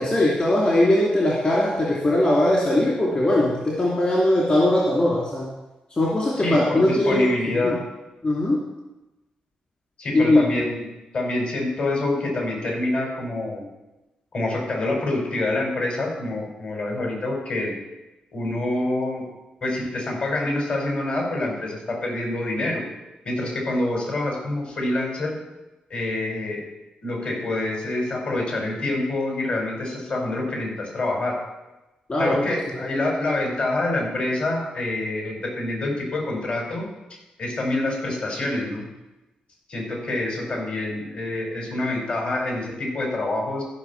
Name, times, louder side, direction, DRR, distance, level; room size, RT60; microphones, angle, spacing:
voice 1, 0.0-5.5 5.9-7.7 8.2-8.6 10.1-10.4 32.1-32.4, left 1 dB, 40° left, -4 dB, 2.8 m, -20 dB
voice 2, 6.4-7.8 10.0-10.9 11.1-13.7 14.3-17.7 18.3-19.3 19.6-22.8 23.2-25.3 25.9-26.6 27.0-31.4 32.2-36.9 37.4-38.9 39.7-43.6, left 2 dB, 55° left, -1 dB, 5.2 m, -26 dB
15.0 x 5.7 x 7.2 m, 1.0 s
cardioid pair, 90°, 3 cm